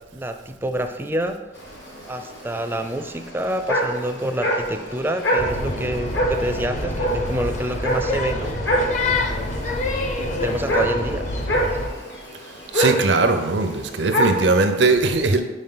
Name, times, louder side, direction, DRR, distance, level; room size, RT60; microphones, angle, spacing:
voice 1, 0.1-1.4 2.1-8.5 10.1-11.2, right 1 dB, 15° right, 7 dB, 0.4 m, -27 dB
sound 1, 1.6-14.5, equal, 75° left, 1.3 m, -26 dB
sound 2, 5.4-11.9, left 2 dB, 45° left, 0.6 m, -27 dB
voice 2, 12.7-15.4, right 3 dB, 85° right, 7 dB, 0.6 m, -19 dB
5.4 x 5.0 x 3.8 m, 1.1 s
head